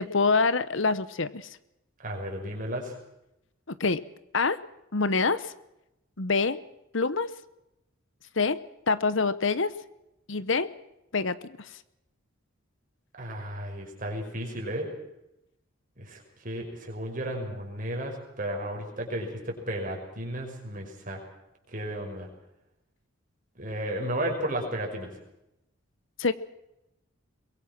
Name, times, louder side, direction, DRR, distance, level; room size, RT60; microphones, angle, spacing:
voice 1, 0.0-1.5 3.8-4.0 4.3-4.6 4.9-5.5 6.2-6.6 6.9-7.3 8.4-8.6 8.9-9.7 10.3-10.7 11.1-11.7 26.2-26.3, left 4 dB, 60° left, 15 dB, 1.0 m, -25 dB
voice 2, 2.0-2.9 13.2-14.9 16.0-21.2 21.7-22.3 23.6-25.1, right 1 dB, 40° right, 2 dB, 6.0 m, -33 dB
23.5 x 22.0 x 6.1 m, 0.88 s
head